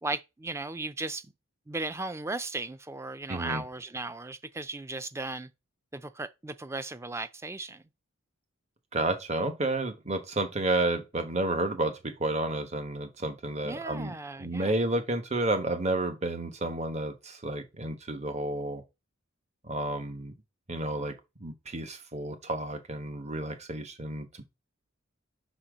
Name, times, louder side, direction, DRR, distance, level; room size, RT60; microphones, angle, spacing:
voice 1, 0.0-1.2 1.7-5.5 5.9-7.8 13.6-14.7, right 2 dB, 15° right, 0.4 m, -36 dB
voice 2, 3.3-3.6 8.9-14.1 14.4-18.8 19.6-20.3 20.7-21.1 21.4-24.4, right 2 dB, 35° right, 1.2 m, -31 dB
5.9 x 4.3 x 5.0 m
head